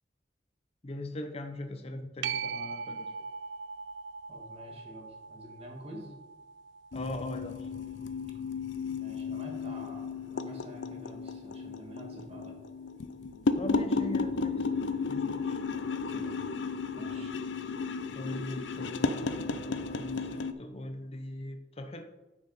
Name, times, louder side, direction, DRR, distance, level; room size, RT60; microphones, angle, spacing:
voice 1, 0.8-3.1 6.9-7.7 13.6-14.7 15.1-15.6 18.1-22.0, left 1 dB, 35° left, 6 dB, 0.8 m, -40 dB
sound 1, 2.2-9.4 14.9-15.0, right 6 dB, 75° right, 0.4 m, -41 dB
voice 2, 4.3-6.1 8.9-12.5 15.7-16.4 16.9-17.4, equal, 35° right, 0 dB, 2.1 m, -48 dB
sound 2, 6.9-20.5, left 4 dB, 85° left, 0.6 m, -34 dB
10.0 x 6.2 x 4.3 m, 1.0 s
head